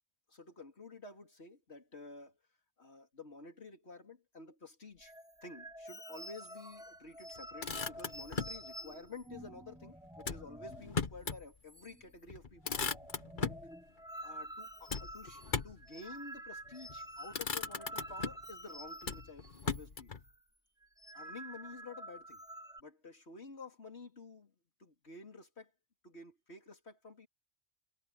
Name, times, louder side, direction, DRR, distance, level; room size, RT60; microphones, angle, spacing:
voice 1, 0.3-2.4 2.8-5.1 5.4-12.8 13.4-13.6 14.2-20.1 21.1-22.4 22.8-24.5 24.8-25.7 26.0-27.3, left 3 dB, 65° left, 3.8 m, -51 dB
sound 1, 5.0-11.0 11.3-11.4 11.7-12.2 12.5-19.9 20.1-20.4 20.8-22.8, right 1 dB, 5° right, 1.0 m, -49 dB
Motor vehicle (road), 7.4-8.6 10.2-11.4 11.8-11.9 12.3-13.7 14.9-15.9 16.7-17.0 17.3-18.5 19.0-20.2, left 5 dB, 45° left, 1.3 m, -38 dB
omnidirectional pair, 1.2 m